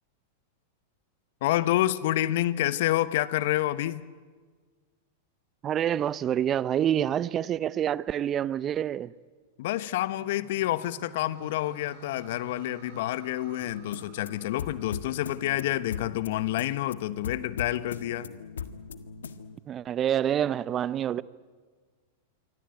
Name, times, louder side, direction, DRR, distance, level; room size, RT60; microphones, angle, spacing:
voice 1, 1.4-4.0 9.6-18.3, left 14 dB, 60° left, 1.1 m, -28 dB
voice 2, 5.6-9.1 19.7-21.2, right 10 dB, 30° right, 0.7 m, -27 dB
sound 1, 9.9-16.2, right 6 dB, 55° right, 7.4 m, -52 dB
sound 2, 13.6-19.6, left 6 dB, 80° left, 1.6 m, -40 dB
27.0 x 24.0 x 9.0 m
hypercardioid pair, 100°, 0 cm